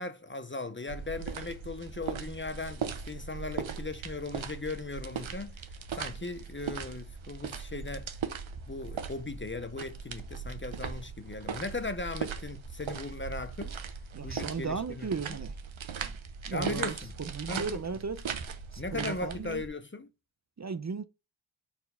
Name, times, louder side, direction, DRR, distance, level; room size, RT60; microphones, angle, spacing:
voice 1, 0.0-8.2 8.7-13.8 14.2-15.4 16.5-17.1 17.5-17.7 18.8-20.1, left 3 dB, 25° left, 0.6 m, -38 dB
sound 1, 0.9-19.7, right 6 dB, 75° right, 0.9 m, -39 dB
voice 2, 14.1-15.5 16.0-16.1 16.5-16.9 17.2-18.2 18.7-19.6 20.6-21.0, right 5 dB, 35° right, 0.6 m, -36 dB
4.4 x 4.3 x 5.5 m
wide cardioid pair, 70°, 47 cm